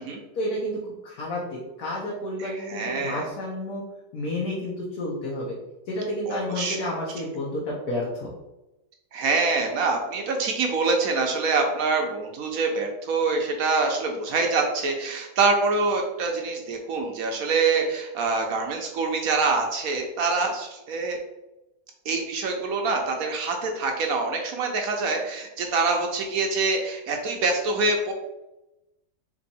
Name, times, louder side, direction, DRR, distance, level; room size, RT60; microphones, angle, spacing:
voice 1, 0.3-3.8 4.1-5.6 5.9-8.3, left 1 dB, 65° left, -4 dB, 1.2 m, -30 dB
voice 2, 2.4-3.3 6.3-6.8 9.1-21.2 22.1-28.1, right 3 dB, 65° right, 2 dB, 1.0 m, -25 dB
3.5 x 3.1 x 4.0 m, 0.97 s
omnidirectional pair, 1.8 m